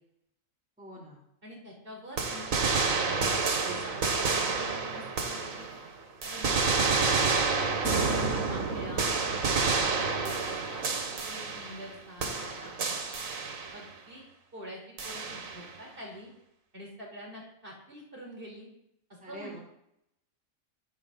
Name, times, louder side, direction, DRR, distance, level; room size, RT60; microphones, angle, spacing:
voice 1, 0.8-1.2 19.2-19.6, right 1 dB, 5° right, -6 dB, 3.6 m, -44 dB
voice 2, 1.4-3.3 3.6-5.0 5.4-5.7 6.2-7.4 7.9-9.1 9.5-12.3 12.6-12.7 13.7-14.2 14.5-16.3 16.7-18.7 19.3-19.6, equal, 40° right, -2 dB, 4.6 m, -45 dB
sound 1, 2.2-5.9 6.2-11.9 12.2-13.9 15.0-15.7, right 4 dB, 90° right, 2.0 m, -29 dB
24.5 x 8.2 x 4.1 m, 0.80 s
omnidirectional pair, 1.4 m